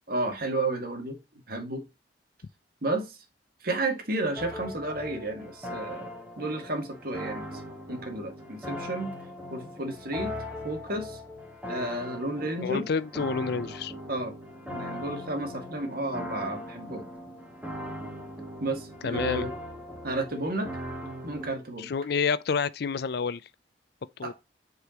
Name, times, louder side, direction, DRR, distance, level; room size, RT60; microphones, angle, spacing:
voice 1, 0.1-1.2 1.5-1.8 2.8-3.2 3.6-6.1 6.4-7.6 7.9-9.1 9.5-10.3 10.6-11.2 11.7-12.9 14.1-14.3 14.7-17.1 18.6-19.6 20.0-20.8 21.2-21.9 24.2-24.3, right 2 dB, 60° right, 2.0 m, -32 dB
sound 1, 4.4-21.5, left 1 dB, 10° right, 2.5 m, -39 dB
voice 2, 12.6-13.9 19.0-19.5 21.8-23.4 24.2-24.3, left 5 dB, 65° left, 0.5 m, -29 dB
8.1 x 4.9 x 2.9 m
head